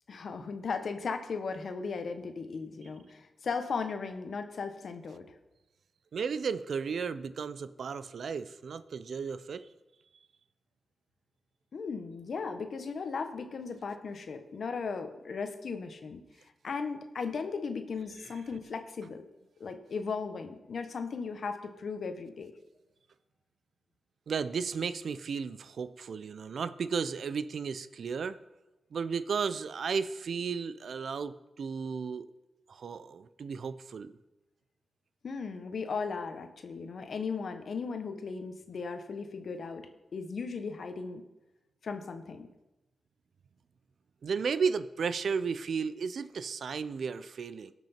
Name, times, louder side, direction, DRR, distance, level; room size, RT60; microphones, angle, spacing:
voice 1, 0.1-5.3 11.7-16.2 16.6-19.2 19.6-22.5 35.2-41.2 41.8-42.5, left 5 dB, 65° left, 7 dB, 1.2 m, -37 dB
voice 2, 6.1-9.7 24.3-28.4 28.9-32.3 32.7-34.1 44.2-47.7, right 5 dB, 70° right, 14 dB, 0.5 m, -34 dB
18.0 x 6.1 x 4.4 m, 1.0 s
cardioid pair, 70°, 0 cm